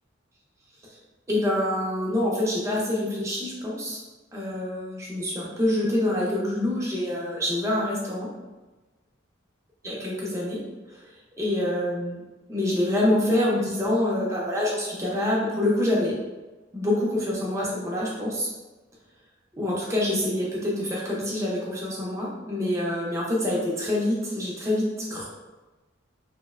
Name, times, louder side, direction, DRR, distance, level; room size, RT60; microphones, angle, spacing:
voice 1, 1.3-4.0 4.3-8.3 9.8-10.6 10.9-11.0 11.4-12.2 12.5-16.2 16.7-18.5 19.5-25.3, left 1 dB, 15° right, -5 dB, 0.5 m, -26 dB
2.6 x 2.0 x 2.3 m, 1.2 s
head